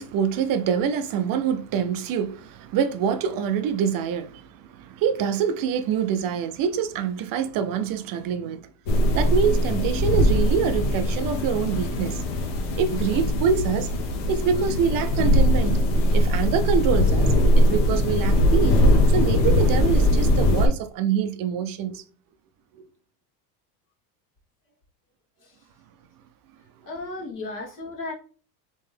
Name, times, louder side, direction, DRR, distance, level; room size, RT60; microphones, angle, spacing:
voice 1, 0.0-8.6 9.1-12.2 12.8-13.9 14.3-15.8 16.1-18.8 19.1-22.0 22.8-22.9, right 7 dB, 45° right, 0.6 m, -25 dB
sound 1, 8.9-20.7, left 1 dB, 70° left, 1.1 m, -21 dB
voice 2, 26.9-28.1, left 2 dB, 40° left, 1.7 m, -34 dB
3.3 x 3.0 x 3.3 m
supercardioid pair, 100°, 49 cm